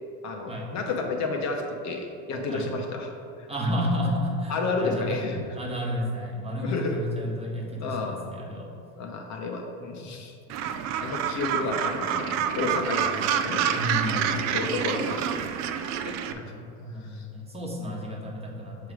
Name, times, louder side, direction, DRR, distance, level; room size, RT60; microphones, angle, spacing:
voice 1, 0.2-3.5 4.5-5.4 6.6-7.0 7.8-8.2 9.0-13.0 13.4-13.8 14.1-15.6 16.0-16.4 17.0-17.3, left 3 dB, 40° left, 2 dB, 0.8 m, -31 dB
voice 2, 3.5-5.2 5.5-8.7 12.8-13.3 13.7-14.5 16.3-18.9, equal, 15° right, -3 dB, 1.2 m, -32 dB
Gull seagull, 10.5-16.3, right 8 dB, 45° right, 0.4 m, -28 dB
6.6 x 3.4 x 4.8 m, 2.5 s
hypercardioid pair, 100°, 41 cm